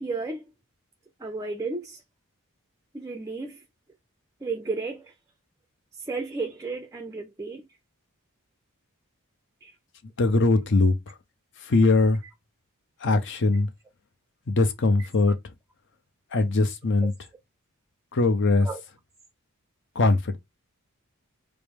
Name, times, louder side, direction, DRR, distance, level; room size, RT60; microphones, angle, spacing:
voice 1, 0.0-0.4 1.2-2.0 2.9-3.6 4.4-5.1 6.1-7.6 9.6-9.7 18.7-18.8, right 3 dB, 15° right, 0.4 m, -33 dB
voice 2, 10.2-11.1 11.6-12.2 13.0-13.7 14.5-15.5 16.3-17.1 18.1-18.7 19.9-20.4, left 3 dB, 55° left, 0.7 m, -21 dB
4.9 x 2.0 x 3.5 m
head